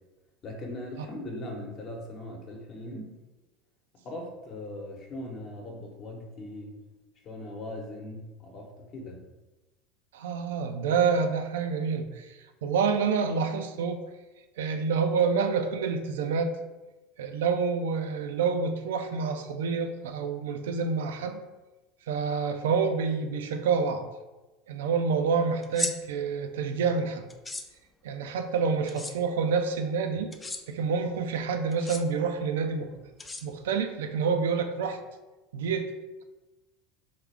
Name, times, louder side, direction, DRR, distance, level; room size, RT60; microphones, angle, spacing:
voice 1, 0.4-3.2 4.0-6.8 7.2-9.2, left 1 dB, 45° left, 1 dB, 0.9 m, -39 dB
voice 2, 10.1-14.0 14.6-16.6 17.2-21.4 22.1-24.1 24.7-27.3 28.0-30.3 30.7-33.0 33.4-35.0 35.5-35.9, right 5 dB, 80° right, 7 dB, 0.3 m, -28 dB
sound 1, 25.6-25.9 27.3-27.6 28.9-29.1 30.3-30.6 31.7-32.0 33.2-33.8, left 3 dB, 15° left, 0.4 m, -34 dB
3.6 x 2.4 x 3.4 m, 1.1 s
hypercardioid pair, 90°, 0 cm